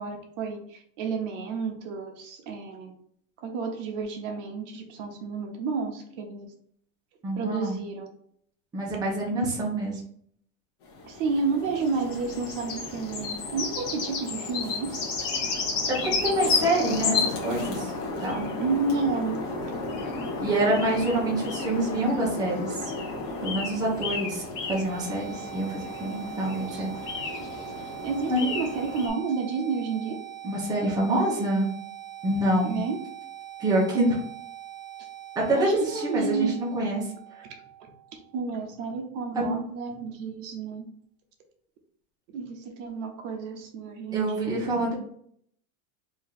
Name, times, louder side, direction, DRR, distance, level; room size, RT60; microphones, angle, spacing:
voice 1, 0.0-2.9 3.4-6.5 7.3-8.1 11.1-15.0 18.6-19.4 26.7-26.9 28.0-30.2 32.6-33.0 35.5-36.5 38.3-40.8 42.3-44.6, right 4 dB, 60° right, 3 dB, 0.9 m, -31 dB
voice 2, 7.2-7.8 8.7-10.0 15.9-17.9 18.2-18.4 20.4-22.9 23.4-24.4 24.7-26.9 28.3-28.6 30.4-31.7 32.2-32.8 33.6-34.2 35.5-37.0 39.3-39.6 44.1-45.0, right 1 dB, 10° right, -5 dB, 0.8 m, -26 dB
sound 1, 10.9-29.1, left 3 dB, 45° left, 1.0 m, -32 dB
sound 2, 24.6-38.6, right 11 dB, 10° left, 1.5 m, -43 dB
3.1 x 2.7 x 3.8 m, 0.65 s
supercardioid pair, 155°, 44 cm